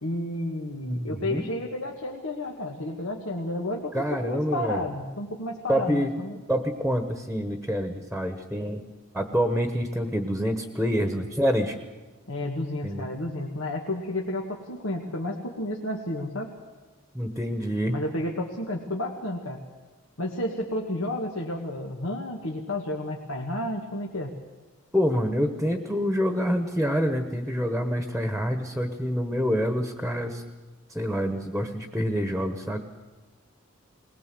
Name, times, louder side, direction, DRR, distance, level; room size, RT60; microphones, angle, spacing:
voice 1, 0.0-6.4 12.3-16.5 17.9-19.6 20.2-24.3, left 1 dB, 85° left, -1 dB, 2.0 m, -31 dB
voice 2, 0.8-1.5 3.9-4.8 5.7-6.1 6.5-8.8 9.1-11.8 12.8-13.0 17.1-18.0 24.9-30.4 30.9-32.8, equal, ahead, 6 dB, 1.2 m, -27 dB
20.5 x 20.5 x 7.8 m, 1.2 s
head